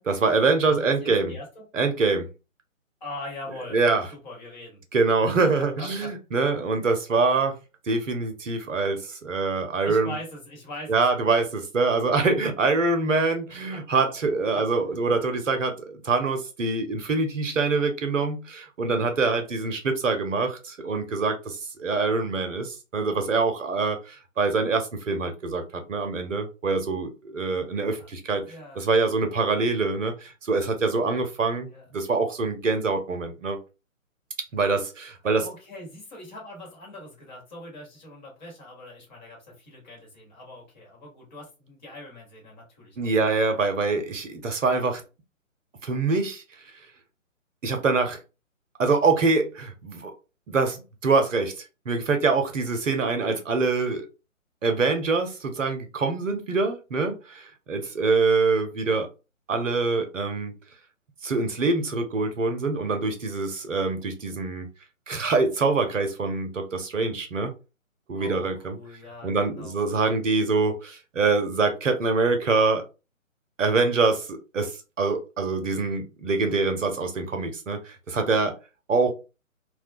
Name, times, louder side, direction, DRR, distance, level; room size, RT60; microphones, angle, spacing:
voice 1, 0.0-1.4 1.7-2.3 3.5-4.1 4.9-7.5 7.9-10.2 10.9-28.4 28.7-33.6 34.5-35.5 43.0-45.0 45.8-46.4 47.6-48.2 48.8-50.1 50.5-54.1 54.6-59.1 59.5-60.5 61.2-64.7 65.1-67.5 68.1-68.8 69.2-72.8 73.6-78.5 78.9-79.1, right 4 dB, 70° right, 6 dB, 0.8 m, -25 dB
voice 2, 0.6-1.7 3.0-3.8 4.1-4.8 5.8-6.1 9.8-11.2 12.1-12.2 13.5-13.8 14.5-14.6 28.0-28.1 28.5-28.9 31.7-31.8 35.4-43.1 68.1-69.9, left 1 dB, 35° left, -2 dB, 1.2 m, -42 dB
2.3 x 2.2 x 2.6 m, 0.30 s
figure-of-eight pair, 140°, 40 cm